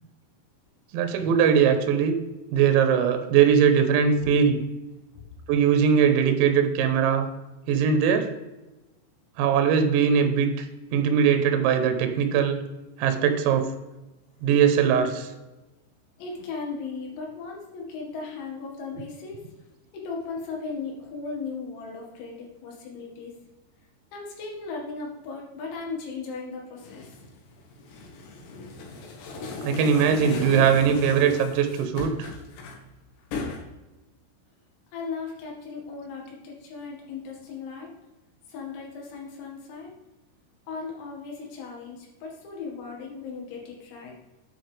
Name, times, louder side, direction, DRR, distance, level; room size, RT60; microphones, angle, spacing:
voice 1, 0.9-2.2 2.5-4.6 5.5-7.3 7.7-8.3 9.4-10.5 10.9-12.6 13.0-13.7 14.4-15.3 29.6-32.3, right 7 dB, 75° right, 8 dB, 3.0 m, -21 dB
voice 2, 16.2-19.5 19.9-23.3 24.1-27.2 34.9-37.9 38.5-39.9 40.7-44.2, left 4 dB, 85° left, -2 dB, 4.6 m, -37 dB
sound 1, 26.8-32.8 33.3-33.6, left 3 dB, 65° left, 3.6 m, -36 dB
9.4 x 8.5 x 3.4 m, 1.1 s
omnidirectional pair, 6.0 m